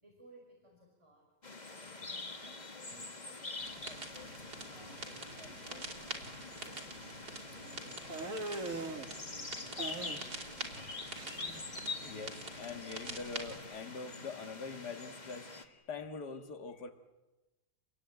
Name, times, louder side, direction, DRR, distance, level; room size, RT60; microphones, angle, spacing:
voice 1, 0.0-1.3 1.8-4.1 4.6-8.6 10.7-10.9, right 1 dB, 15° right, -1 dB, 5.3 m, -61 dB
sound 1, 1.4-15.6, left 3 dB, 25° left, 1.8 m, -45 dB
sound 2, 3.6-13.6, right 2 dB, 80° right, 4.2 m, -46 dB
sound 3, 8.1-9.1 9.8-10.5 10.8-11.6, right 2 dB, 55° right, 2.3 m, -40 dB
voice 2, 11.4-16.9, left 4 dB, 90° left, 7 dB, 2.3 m, -44 dB
29.5 x 21.0 x 9.0 m, 1.1 s
omnidirectional pair, 1.7 m